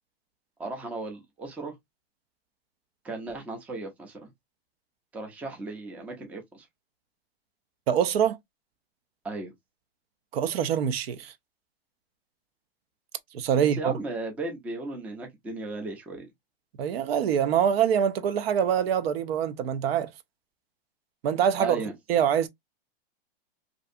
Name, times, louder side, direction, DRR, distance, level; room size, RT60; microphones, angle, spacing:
voice 1, 0.6-1.7 3.0-4.3 5.1-6.7 9.2-9.5 13.6-16.3 21.6-21.9, right 2 dB, 5° right, 0.4 m, -36 dB
voice 2, 7.9-8.4 10.3-11.3 13.3-13.9 16.8-20.1 21.2-21.8 22.1-22.5, right 8 dB, 70° right, 0.6 m, -24 dB
2.6 x 2.3 x 2.5 m
hypercardioid pair, 135°, 31 cm